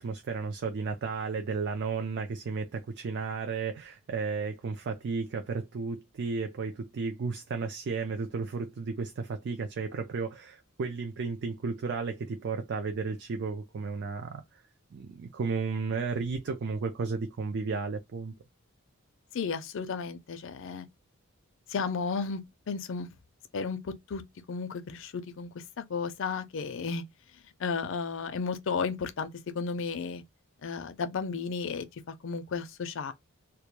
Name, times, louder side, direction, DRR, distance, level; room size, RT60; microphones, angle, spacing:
voice 1, 0.0-14.6 14.9-18.3, right 4 dB, 50° right, 0.3 m, -33 dB
voice 2, 19.3-20.9 21.7-23.1 23.5-24.2 24.5-27.0 27.6-29.3 29.5-30.2 30.6-33.1, left 5 dB, 60° left, 0.4 m, -33 dB
2.2 x 2.1 x 2.9 m
head